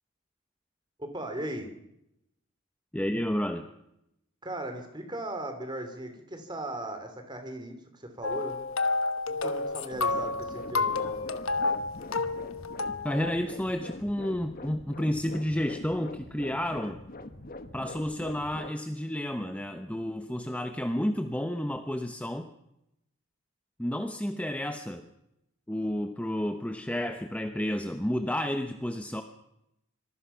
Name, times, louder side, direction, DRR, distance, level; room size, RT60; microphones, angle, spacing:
voice 1, 1.0-1.7 4.4-8.7 9.3-11.2, right 1 dB, 20° right, 6 dB, 3.3 m, -38 dB
voice 2, 2.9-3.7 13.0-17.0 17.7-22.5 23.8-25.1 25.7-29.2, left 1 dB, 5° left, 6 dB, 1.0 m, -31 dB
sound 1, 8.2-13.4, left 3 dB, 70° left, 1.2 m, -30 dB
sound 2, 9.9-18.7, left 2 dB, 40° left, 1.3 m, -44 dB
26.0 x 20.5 x 5.8 m, 0.83 s
head